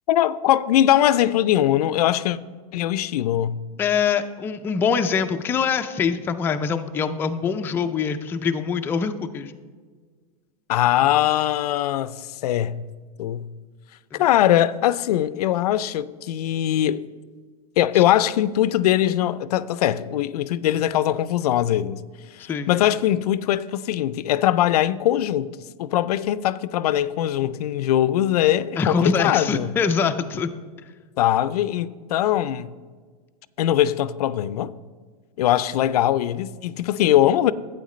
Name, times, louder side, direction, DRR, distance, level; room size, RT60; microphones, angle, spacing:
voice 1, 0.1-2.4 2.7-3.6 10.7-12.8 13.2-13.5 14.1-17.0 17.8-22.0 22.4-25.5 25.8-29.7 31.2-32.7 33.6-34.7 35.4-37.5, left 12 dB, 80° left, 0.4 m, -21 dB
voice 2, 3.8-9.5 14.1-14.2 17.9-18.0 22.5-22.7 28.8-30.5, left 6 dB, 10° left, 0.3 m, -24 dB
11.5 x 8.8 x 3.1 m
supercardioid pair, 140°, 19 cm